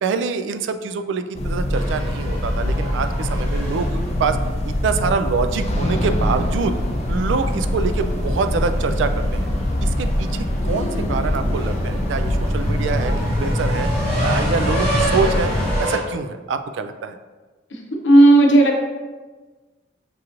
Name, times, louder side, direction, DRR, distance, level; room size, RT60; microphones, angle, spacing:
voice 1, 0.0-4.4 4.6-6.8 7.1-9.5 9.8-13.9 14.2-17.2, right 5 dB, 75° right, 9 dB, 0.3 m, -25 dB
sound 1, 1.4-15.8, left 1 dB, 35° left, 0.4 m, -23 dB
sound 2, 1.7-16.0, equal, 35° right, 1.0 m, -31 dB
voice 2, 18.0-18.8, right 2 dB, 70° left, 1 dB, 0.7 m, -11 dB
6.0 x 2.9 x 2.5 m, 1.3 s
head